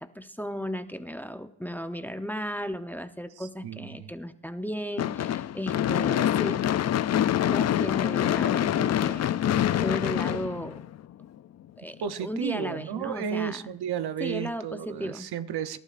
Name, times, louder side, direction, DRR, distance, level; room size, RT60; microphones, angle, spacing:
voice 1, 0.0-6.6 7.4-9.4 9.8-10.8 11.8-12.0 12.2-13.7 14.2-15.3, equal, 5° left, 0.7 m, -35 dB
voice 2, 3.4-4.1 12.0-15.8, right 8 dB, 65° right, 0.8 m, -33 dB
Gunshot gunfire / Fireworks, 5.0-11.2, left 11 dB, 40° left, 0.4 m, -25 dB
25.0 x 12.0 x 2.5 m
cardioid pair, 75°, 42 cm